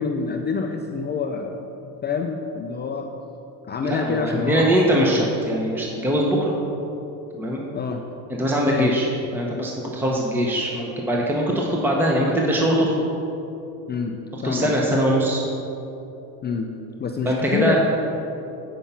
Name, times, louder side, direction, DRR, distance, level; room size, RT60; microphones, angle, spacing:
voice 1, 0.0-1.6 2.0-3.1 3.7-4.7 7.7-8.0 8.7-8.9 13.9-14.1 14.4-14.7 16.4-16.7 17.0-17.8, left 5 dB, 25° left, 3 dB, 0.4 m, -26 dB
voice 2, 3.8-6.6 7.3-7.6 8.3-12.9 14.4-15.4 17.2-17.8, equal, 5° right, -2 dB, 1.0 m, -22 dB
9.2 x 5.6 x 5.8 m, 2.9 s
supercardioid pair, 110°, 47 cm